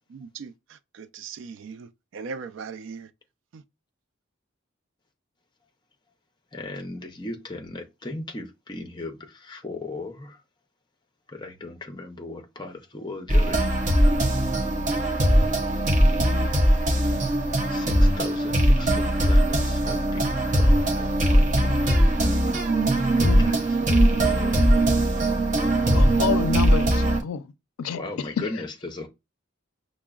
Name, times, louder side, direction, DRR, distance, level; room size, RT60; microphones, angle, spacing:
voice 1, 0.1-3.1 3.5-3.6, right 5 dB, 65° right, 0.3 m, -39 dB
voice 2, 6.5-10.4 11.3-13.7 17.7-21.7 23.0-24.6 27.9-29.1, left 2 dB, 20° left, 0.6 m, -37 dB
sound 1, 13.3-27.2, right 1 dB, 35° right, 0.7 m, -20 dB
voice 3, 25.6-27.4 27.8-28.0, left 6 dB, 85° left, 0.4 m, -29 dB
5.9 x 2.0 x 2.3 m
head